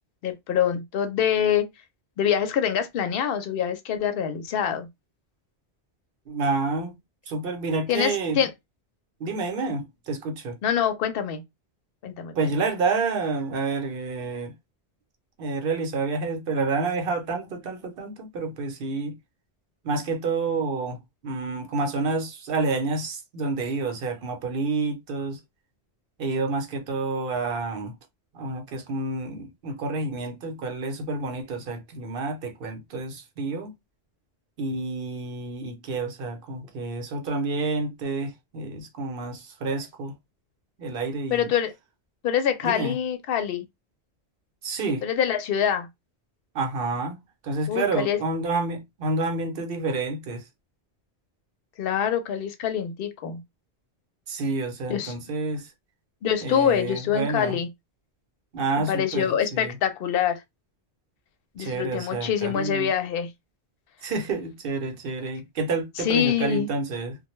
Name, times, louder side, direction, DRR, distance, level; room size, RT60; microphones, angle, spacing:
voice 1, 0.2-1.7 2.2-4.9 7.9-8.5 10.6-11.4 12.0-12.6 41.3-41.7 42.2-43.7 45.0-45.9 47.7-48.2 51.8-53.4 54.9-55.1 56.2-57.7 58.9-60.4 61.5-63.3 66.0-66.7, left 8 dB, 65° left, 0.7 m, -25 dB
voice 2, 6.3-7.0 7.3-8.4 9.2-10.6 12.3-14.5 15.4-19.1 19.8-25.4 26.2-27.9 28.3-33.7 34.6-40.1 40.8-41.5 42.6-42.9 44.6-45.0 46.5-50.4 54.3-55.7 56.4-57.6 58.5-59.7 61.6-62.9 64.0-67.2, right 3 dB, 60° right, 0.8 m, -29 dB
2.2 x 2.1 x 2.9 m
omnidirectional pair, 1.1 m